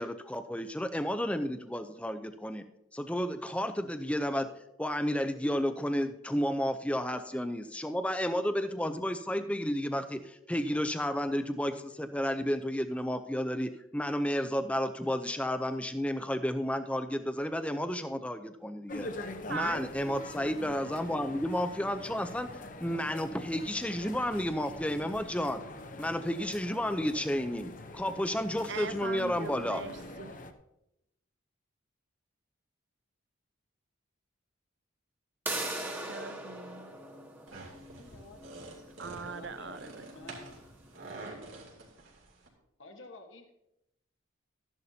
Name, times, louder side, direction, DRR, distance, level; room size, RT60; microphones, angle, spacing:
voice 1, 0.0-2.6 2.9-4.5 4.8-19.1 19.5-22.5 22.8-25.6 26.0-29.8, equal, 5° left, 9 dB, 0.5 m, -32 dB
sound 1, 18.9-30.5, left 2 dB, 40° left, 0.7 m, -44 dB
voice 2, 19.5-19.8 28.7-30.4 35.9-36.9 39.0-40.0, right 5 dB, 60° right, 11 dB, 0.7 m, -40 dB
sound 2, 35.5-41.0, right 1 dB, 10° right, 1.2 m, -41 dB
sound 3, 37.5-42.5, right 2 dB, 75° right, 2.8 m, -48 dB
voice 3, 38.0-38.5 39.2-40.5 42.8-43.5, left 2 dB, 70° left, 4 dB, 1.3 m, -50 dB
13.5 x 11.0 x 2.8 m, 0.84 s
head